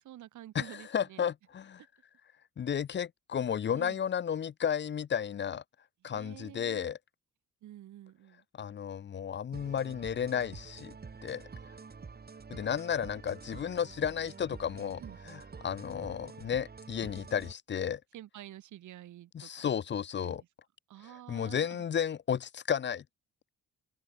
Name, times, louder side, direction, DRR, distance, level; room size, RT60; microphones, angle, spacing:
voice 1, 0.0-1.3 3.7-4.0 6.0-6.9 7.6-8.4 12.6-12.7 15.0-15.2 18.1-19.7 20.2-20.5 20.9-21.8, right 13 dB, 75° right, 2.3 m, -49 dB
voice 2, 0.5-1.8 2.6-5.6 6.0-7.0 8.6-10.9 11.2-11.5 12.5-15.0 15.3-18.0 19.3-20.4 21.3-23.0, left 8 dB, 35° left, 0.6 m, -33 dB
sound 1, 9.5-17.5, right 5 dB, 30° right, 3.9 m, -48 dB
open air
cardioid pair, 90°, 30 cm